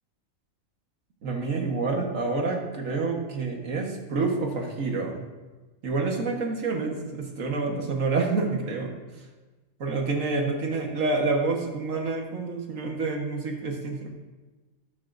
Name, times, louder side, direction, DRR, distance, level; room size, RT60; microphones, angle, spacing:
voice 1, 1.2-5.2 5.8-8.9 9.8-14.1, right 3 dB, 70° right, 1 dB, 1.8 m, -28 dB
12.5 x 10.5 x 2.6 m, 1.2 s
omnidirectional pair, 1.4 m